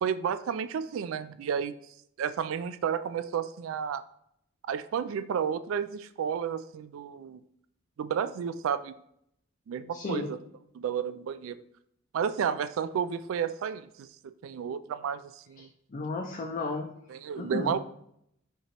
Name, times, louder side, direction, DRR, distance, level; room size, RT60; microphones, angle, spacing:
voice 1, 0.0-1.7 2.2-4.0 4.7-7.4 8.0-9.0 9.7-10.4 10.8-11.6 12.1-14.1 14.4-15.7 17.1-17.8, right 7 dB, 85° right, 14 dB, 0.3 m, -31 dB
voice 2, 9.9-10.3 15.6-16.9 17.4-17.8, left 3 dB, 40° left, 2 dB, 0.4 m, -34 dB
5.6 x 2.9 x 2.9 m, 0.75 s
head